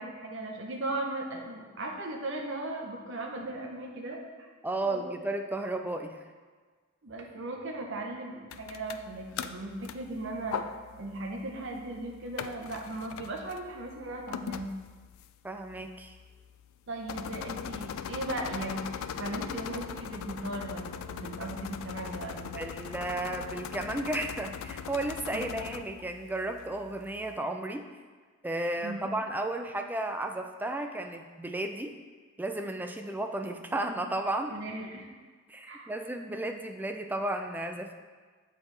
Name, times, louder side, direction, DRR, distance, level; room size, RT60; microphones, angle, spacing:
voice 1, 0.0-4.5 4.8-5.2 7.0-10.6 11.0-14.7 16.9-18.8 19.1-22.7 25.3-25.6 28.8-29.1 34.5-35.1 35.7-35.9, right 2 dB, 65° right, 2 dB, 0.8 m, -37 dB
voice 2, 4.6-6.2 15.4-16.2 22.6-27.8 28.4-31.9 32.4-34.6 35.5-37.9, right 2 dB, 10° right, 5 dB, 0.3 m, -33 dB
sound 1, 8.5-27.4, left 8 dB, 75° left, 0.3 m, -41 dB
7.6 x 4.4 x 3.3 m, 1.5 s
head